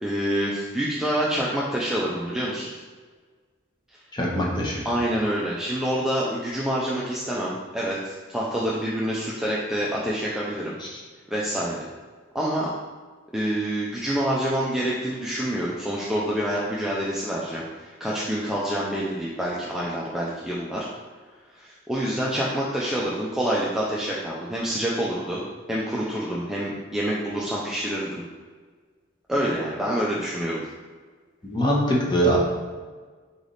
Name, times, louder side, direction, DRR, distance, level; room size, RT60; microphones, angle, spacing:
voice 1, 0.0-2.8 4.8-10.8 11.3-11.8 12.3-12.7 13.3-20.9 21.5-25.4 25.7-28.2 29.3-30.6, right 1 dB, 5° right, -6 dB, 0.4 m, -27 dB
voice 2, 4.1-4.9 10.8-11.0 31.5-32.4, right 1 dB, 20° left, -3 dB, 0.9 m, -23 dB
4.0 x 3.3 x 3.9 m, 1.5 s
head